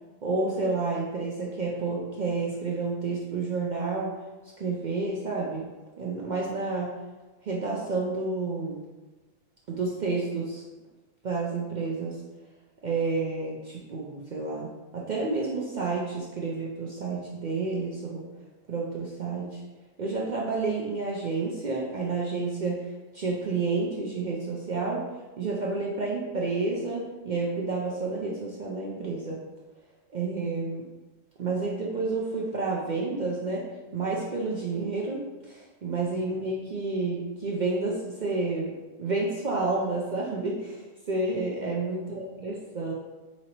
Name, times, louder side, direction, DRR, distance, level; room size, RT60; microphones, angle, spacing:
voice 1, 0.2-4.2 4.6-5.7 6.0-6.9 7.4-8.8 9.7-10.6 11.2-12.2 12.8-18.2 18.7-19.6 20.0-25.1 25.4-29.4 30.1-30.9 31.4-42.9, right 3 dB, 70° right, -3 dB, 0.4 m, -30 dB
5.0 x 2.9 x 2.9 m, 1.2 s
omnidirectional pair, 1.4 m